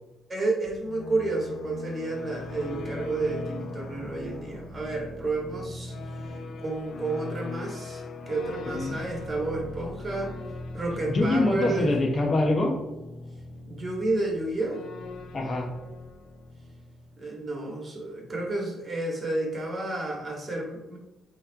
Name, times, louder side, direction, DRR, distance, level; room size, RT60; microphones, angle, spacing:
voice 1, 0.3-5.9 6.6-8.0 8.3-10.3 10.7-11.9 13.6-14.8 17.2-21.0, right 2 dB, 30° right, 0 dB, 1.9 m, -31 dB
sound 1, 0.7-17.3, left 2 dB, 65° left, 0.8 m, -39 dB
voice 2, 8.7-9.1 11.1-12.8 15.3-15.7, left 2 dB, 40° left, 2 dB, 1.1 m, -24 dB
7.7 x 3.3 x 4.6 m, 0.96 s
cardioid pair, 90°, 0 cm